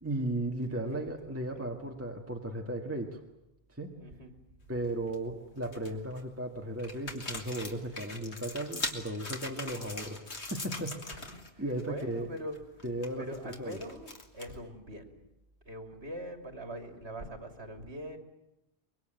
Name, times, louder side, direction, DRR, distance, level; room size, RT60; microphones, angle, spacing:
voice 1, 0.0-3.2 3.7-3.9 4.7-11.3 11.6-12.3 12.8-13.8, right 1 dB, 15° right, 2 dB, 1.8 m, -36 dB
voice 2, 0.7-1.7 4.0-4.3 11.1-15.1 15.6-18.2, equal, 75° right, 6 dB, 3.1 m, -43 dB
sound 1, 4.7-5.1 5.6-6.2 6.8-11.5 11.7-12.0 12.4-14.7, left 2 dB, 85° left, 2.7 m, -41 dB
24.0 x 22.5 x 9.1 m, 0.88 s
omnidirectional pair, 1.1 m